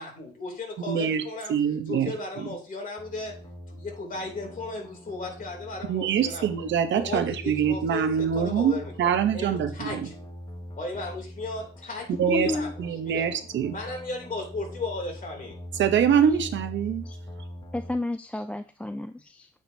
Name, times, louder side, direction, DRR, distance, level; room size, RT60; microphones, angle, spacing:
voice 1, 0.0-1.5 1.9-3.4 3.7-6.5 6.9-10.1 10.7-13.3 13.7-15.6, left 2 dB, 45° left, 2 dB, 3.0 m, -35 dB
voice 2, 0.9-1.2 1.5-2.5 5.9-10.1 12.2-13.8 15.8-17.0, right 8 dB, 70° right, 8 dB, 0.9 m, -25 dB
sound 1, 3.0-17.9, equal, 20° left, 1.1 m, -42 dB
voice 3, 12.3-12.7 17.1-17.2 17.7-19.5, left 2 dB, 5° left, 9 dB, 0.3 m, -31 dB
9.1 x 5.1 x 2.8 m, 0.38 s
cardioid pair, 90°, 20 cm